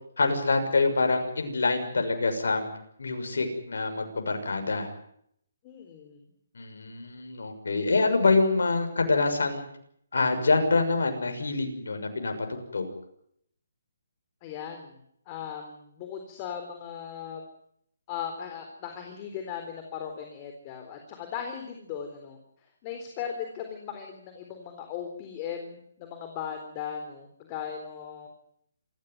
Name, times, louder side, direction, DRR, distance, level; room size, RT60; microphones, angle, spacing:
voice 1, 0.2-2.7 3.0-4.9 6.5-9.6 10.1-12.9, left 3 dB, 80° left, 6 dB, 6.4 m, -26 dB
voice 2, 5.6-6.2 14.4-15.0 15.3-17.4 18.1-22.4 22.8-28.3, left 8 dB, 30° left, 5 dB, 3.9 m, -38 dB
27.5 x 15.0 x 9.5 m, 0.71 s
hypercardioid pair, 155°, 0 cm